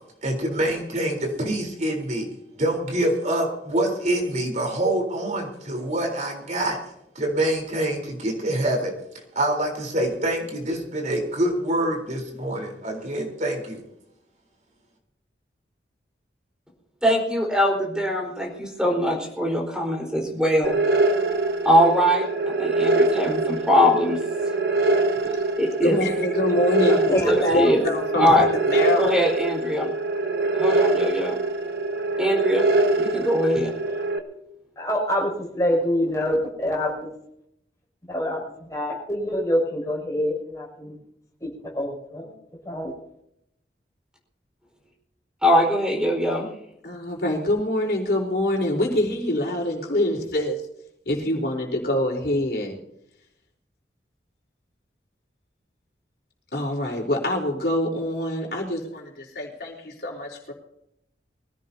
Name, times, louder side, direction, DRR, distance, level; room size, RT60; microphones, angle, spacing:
voice 1, 0.2-2.3 2.6-6.8 7.2-8.9 9.4-13.8, right 1 dB, 45° right, 1 dB, 3.9 m, -25 dB
voice 2, 17.0-20.8 21.6-22.2 22.6-24.2 25.6-26.0 27.3-27.8 28.2-28.5 29.0-29.9 30.6-31.4 32.2-32.6 33.0-33.7 45.4-46.5, equal, 5° right, -1 dB, 4.5 m, -21 dB
sound 1, 20.6-34.2, right 3 dB, 60° right, 1.4 m, -24 dB
voice 3, 25.8-29.2 46.8-50.6 51.1-52.7 56.5-60.5, left 1 dB, 60° left, 0 dB, 4.1 m, -25 dB
voice 4, 26.9-27.9 34.8-37.1 38.1-40.9 41.4-42.3 42.6-42.9, left 1 dB, 20° left, -3 dB, 6.7 m, -26 dB
23.0 x 16.5 x 2.8 m, 0.77 s
head